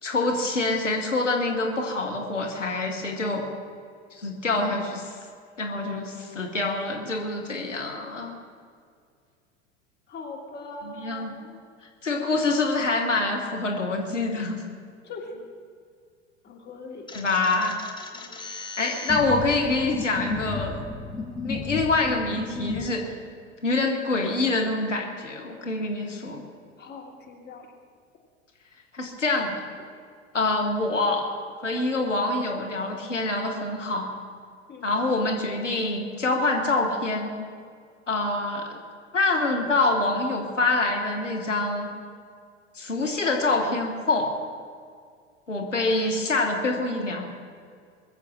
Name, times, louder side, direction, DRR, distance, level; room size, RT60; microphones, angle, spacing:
voice 1, 0.0-3.5 4.2-5.1 5.6-8.3 10.8-11.3 12.0-14.6 17.1-17.8 18.5-20.8 21.4-23.1 23.6-26.4 28.9-29.5 30.3-31.2 31.6-34.1 34.8-37.3 38.1-38.8 39.1-41.9 42.7-44.3 45.5-47.3, left 2 dB, 85° left, 1 dB, 1.7 m, -26 dB
voice 2, 10.1-11.6 15.0-15.5 16.4-17.0 18.1-18.4 26.8-27.7 34.7-34.9, left 3 dB, 30° left, 1 dB, 2.6 m, -41 dB
sound 1, 17.1-22.9, left 4 dB, 10° left, 1.3 m, -34 dB
22.0 x 7.5 x 7.5 m, 2.1 s
figure-of-eight pair, 80°, 36 cm